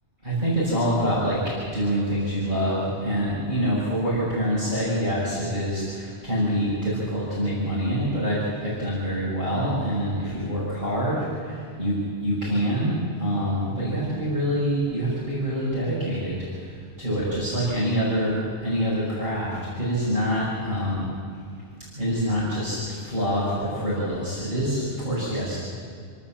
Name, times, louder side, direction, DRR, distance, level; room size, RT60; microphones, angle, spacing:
voice 1, 0.2-21.1 21.9-25.7, equal, 45° right, -9 dB, 6.7 m, -26 dB
28.5 x 13.0 x 7.4 m, 2.2 s
omnidirectional pair, 1.2 m